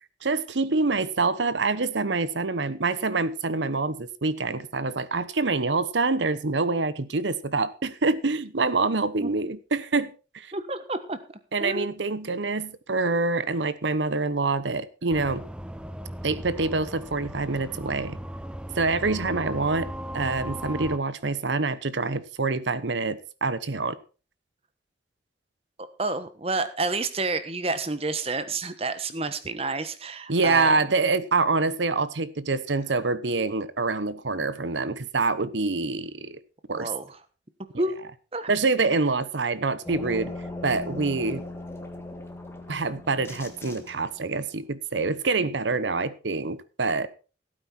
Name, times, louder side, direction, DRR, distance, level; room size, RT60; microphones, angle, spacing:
voice 1, 0.2-10.5 11.5-15.4 16.2-18.2 18.7-19.9 20.1-24.0 30.3-36.4 36.7-36.9 38.5-40.3 40.6-41.4 42.7-47.1, right 3 dB, 85° right, 1.0 m, -26 dB
voice 2, 10.5-11.2 11.6-11.9 26.0-30.8 36.7-37.2 37.8-37.9 38.3-38.5, right 3 dB, 35° right, 1.2 m, -29 dB
sound 1, 15.1-21.0, equal, 5° right, 0.5 m, -37 dB
sound 2, 39.9-44.4, left 2 dB, 15° left, 1.7 m, -38 dB
16.5 x 9.0 x 4.4 m
head